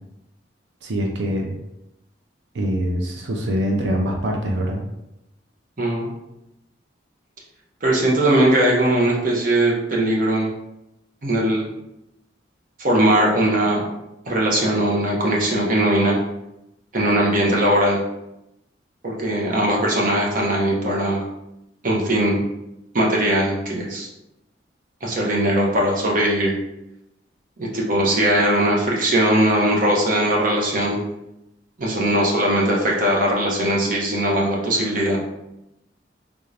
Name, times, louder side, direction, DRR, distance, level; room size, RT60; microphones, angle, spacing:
voice 1, 0.8-1.5 2.5-4.8, equal, 75° right, 1 dB, 0.6 m, -24 dB
voice 2, 5.8-6.1 7.8-10.5 11.2-11.7 12.8-13.8 14.3-16.2 16.9-18.0 19.0-21.2 21.8-22.4 22.9-24.1 25.0-26.5 27.6-31.0 31.8-35.2, right 1 dB, 50° right, -2 dB, 0.9 m, -20 dB
3.6 x 2.6 x 3.3 m, 0.87 s
head